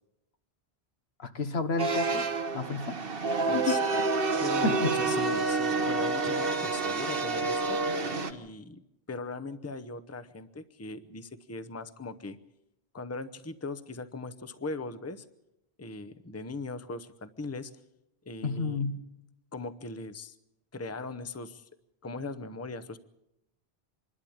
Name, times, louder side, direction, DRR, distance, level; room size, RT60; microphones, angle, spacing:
voice 1, 1.2-2.3 2.5-3.0 3.5-3.8 4.6-4.9 18.4-19.0, left 4 dB, 75° left, 9 dB, 1.6 m, -30 dB
sound 1, 1.8-8.3, right 3 dB, 60° right, 1.6 m, -28 dB
voice 2, 3.4-3.8 4.4-7.8 8.3-8.8 9.1-12.4 12.9-15.2 15.8-17.7 18.2-18.8 19.5-20.3 20.7-21.7 22.0-23.0, left 3 dB, 15° left, 12 dB, 0.8 m, -39 dB
26.5 x 12.0 x 8.7 m, 0.87 s
omnidirectional pair, 1.1 m